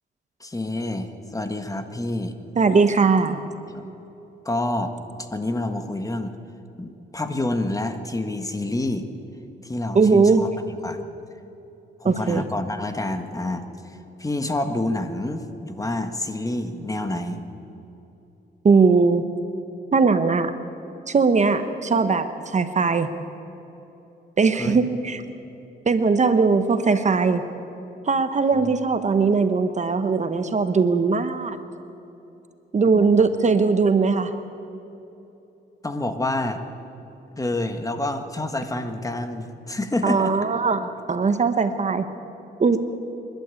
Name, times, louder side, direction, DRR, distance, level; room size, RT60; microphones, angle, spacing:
voice 1, 0.4-2.4 3.7-3.8 4.4-4.9 5.2-6.4 6.8-9.0 9.6-10.5 10.8-11.0 12.0-17.4 24.6-24.8 28.5-28.7 32.9-33.1 35.8-36.6 37.4-40.4, left 2 dB, 20° left, 7 dB, 1.6 m, -28 dB
voice 2, 2.6-3.4 9.9-10.4 12.0-12.4 18.6-19.2 19.9-20.5 21.1-23.1 24.4-25.2 25.9-27.4 28.1-31.6 32.7-34.3 40.0-42.1 42.6-42.8, right 4 dB, 40° right, 9 dB, 1.1 m, -19 dB
26.5 x 12.0 x 8.4 m, 2.9 s
cardioid pair, 90°, 19 cm